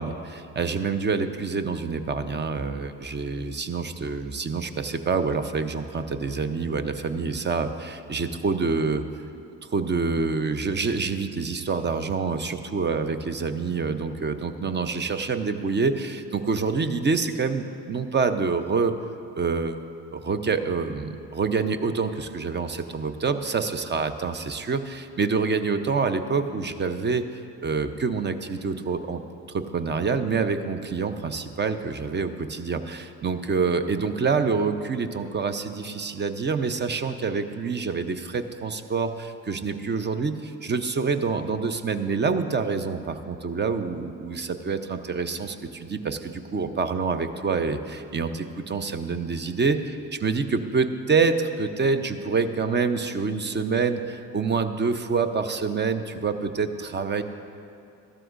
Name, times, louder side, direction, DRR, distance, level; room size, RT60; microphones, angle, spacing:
voice 1, 0.0-9.0 9.7-18.9 19.4-19.7 20.1-29.2 29.5-57.2, right 4 dB, 25° right, 9 dB, 0.7 m, -27 dB
14.0 x 12.0 x 2.5 m, 2.5 s
hypercardioid pair, 55°, 39 cm